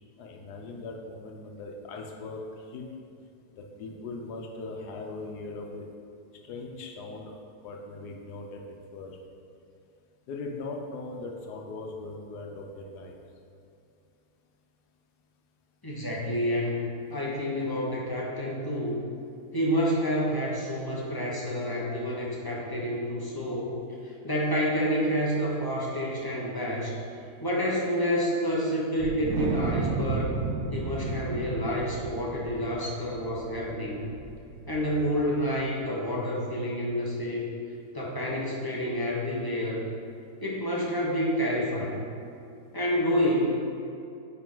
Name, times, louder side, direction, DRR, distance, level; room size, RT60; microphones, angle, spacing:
voice 1, 0.2-2.8 3.6-5.9 6.4-7.3 7.6-8.6 8.9-9.1 10.3-13.2, left 3 dB, 90° left, 1 dB, 1.3 m, -39 dB
voice 2, 15.8-16.8 17.1-19.0 19.5-23.7 24.2-27.0 27.4-30.4 30.7-34.0 34.7-37.5 37.9-39.8 40.4-42.0 42.7-43.6, equal, 15° left, -4 dB, 0.9 m, -28 dB
Wind, 29.0-35.5, right 4 dB, 70° right, 0.9 m, -33 dB
9.0 x 4.3 x 3.8 m, 2.5 s
omnidirectional pair, 1.7 m